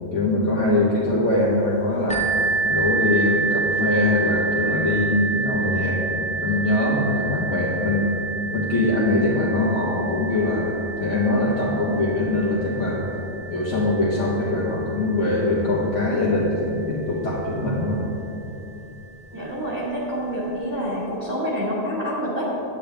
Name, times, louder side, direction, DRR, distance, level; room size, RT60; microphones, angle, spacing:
voice 1, 0.1-2.3 2.6-8.1 8.5-13.1 13.5-18.0, left 2 dB, 80° left, -7 dB, 1.6 m, -22 dB
sound 1, 2.1-17.6 18.4-18.5 19.1-19.2, right 4 dB, 10° left, 0.6 m, -29 dB
voice 2, 19.3-22.4, equal, 15° right, -8 dB, 1.5 m, -27 dB
9.4 x 8.6 x 3.4 m, 3.0 s
omnidirectional pair, 1.3 m